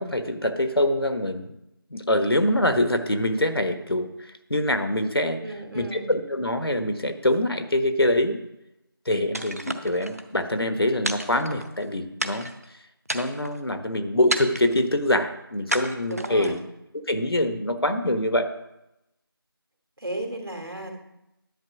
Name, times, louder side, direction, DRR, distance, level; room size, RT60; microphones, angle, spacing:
voice 1, 0.0-1.5 1.9-4.1 4.5-5.4 5.7-8.4 9.1-12.5 13.1-16.6 17.1-18.5, left 1 dB, 80° left, 8 dB, 1.2 m, -24 dB
voice 2, 5.4-6.1 16.0-16.6 20.0-21.0, right 1 dB, 80° right, 3 dB, 2.5 m, -34 dB
sound 1, 9.3-10.2 11.0-11.8 12.2-12.6 13.0-13.6 14.3-14.9 15.7-16.6, right 1 dB, 40° right, 0.7 m, -31 dB
10.5 x 8.0 x 4.9 m, 0.88 s
figure-of-eight pair, 175°, 13 cm